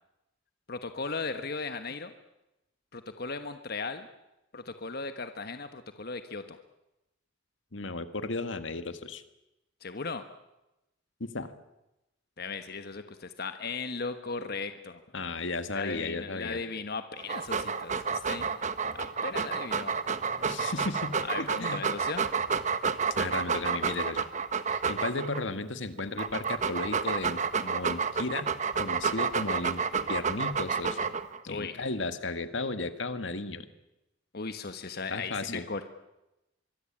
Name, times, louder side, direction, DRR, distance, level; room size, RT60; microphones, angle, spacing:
voice 1, 0.7-2.1 2.9-4.1 4.5-6.6 9.8-10.2 12.4-15.0 15.7-18.5 18.9-19.9 21.2-22.2 31.5-31.8 34.3-35.9, left 4 dB, 55° left, 9 dB, 1.3 m, -37 dB
voice 2, 7.7-9.2 11.2-11.5 15.1-16.6 20.4-21.8 23.1-24.3 24.7-28.5 28.8-29.8 30.1-31.1 31.4-33.7 35.1-35.6, left 3 dB, 75° left, 10 dB, 1.8 m, -34 dB
Dog, 17.2-25.4 26.0-31.4, right 5 dB, 40° right, 1.3 m, -30 dB
25.0 x 22.5 x 8.8 m, 0.93 s
head